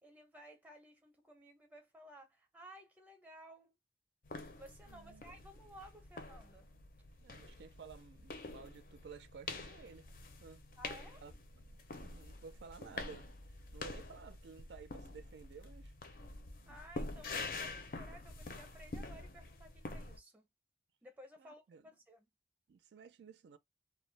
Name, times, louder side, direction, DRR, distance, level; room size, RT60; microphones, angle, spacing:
voice 1, 0.0-3.7 4.5-6.7 10.8-11.2 16.7-20.5 21.0-22.3, right 1 dB, 10° right, 0.6 m, -56 dB
sound 1, 4.2-20.2, left 3 dB, 50° left, 0.5 m, -47 dB
voice 2, 4.9-5.2 7.2-10.1 10.4-10.6 11.2-13.3 13.7-15.9 16.6-16.8 21.4-21.8 22.7-23.6, right 5 dB, 80° right, 0.4 m, -54 dB
2.2 x 2.0 x 3.1 m
head